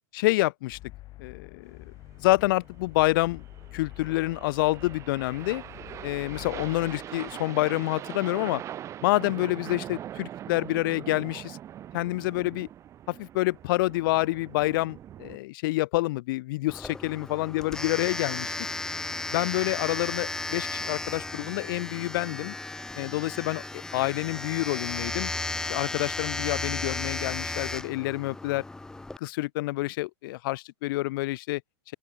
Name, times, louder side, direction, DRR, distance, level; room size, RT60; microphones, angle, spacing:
voice 1, 0.1-0.8 1.2-1.8 2.2-3.4 3.7-5.6 6.0-8.6 9.0-11.6 11.9-12.7 13.1-18.7 19.3-22.5 22.9-25.3 25.7-28.6 29.2-31.6, left 20 dB, 50° left, 1.2 m, -28 dB
sound 1, 0.7-7.1, left 17 dB, 30° left, 6.6 m, -47 dB
sound 2, 2.0-15.4, right 11 dB, 20° right, 1.3 m, -42 dB
Domestic sounds home sounds, 16.7-29.2, left 2 dB, 5° left, 0.7 m, -34 dB
open air
supercardioid pair, 160°, 15 cm